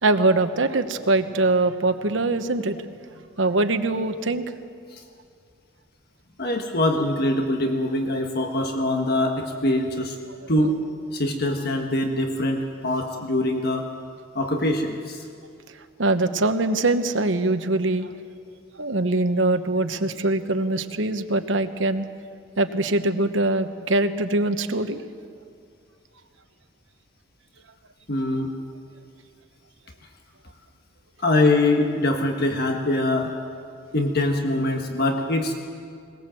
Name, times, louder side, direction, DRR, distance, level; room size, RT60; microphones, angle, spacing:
voice 1, 0.0-2.8 3.4-4.5 16.0-18.1 18.8-22.0 22.6-25.0, right 2 dB, 75° right, 9 dB, 1.1 m, -22 dB
voice 2, 6.4-10.1 10.5-10.8 11.1-13.9 14.3-15.2 28.1-28.5 31.2-33.3 33.9-35.6, left 1 dB, 55° left, 3 dB, 1.5 m, -23 dB
21.5 x 20.5 x 7.7 m, 2.3 s
head